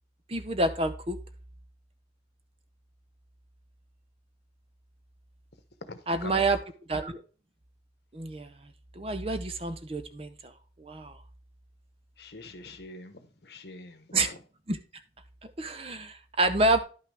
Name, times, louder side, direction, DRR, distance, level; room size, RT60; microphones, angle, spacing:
voice 1, 0.3-1.2 6.1-6.6 6.9-7.2 8.1-8.5 9.0-10.5 10.8-11.1 14.1-14.3 14.7-14.8 15.6-16.8, right 2 dB, 30° right, 0.7 m, -28 dB
voice 2, 5.9-6.4 12.2-14.4, left 2 dB, 65° left, 1.1 m, -44 dB
11.0 x 5.8 x 3.4 m
head